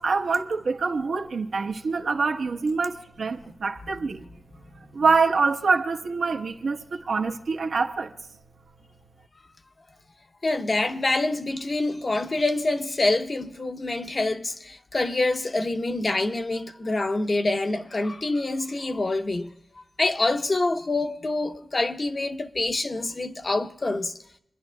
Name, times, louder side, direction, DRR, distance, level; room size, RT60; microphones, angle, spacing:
voice 1, 0.0-2.9 3.2-3.4 3.6-4.2 5.0-6.8 7.1-8.1, right 4 dB, 80° right, 1.0 m, -24 dB
voice 2, 10.4-24.1, left 2 dB, 40° left, 0.8 m, -26 dB
28.5 x 10.5 x 2.2 m
wide cardioid pair, 110°, 0 cm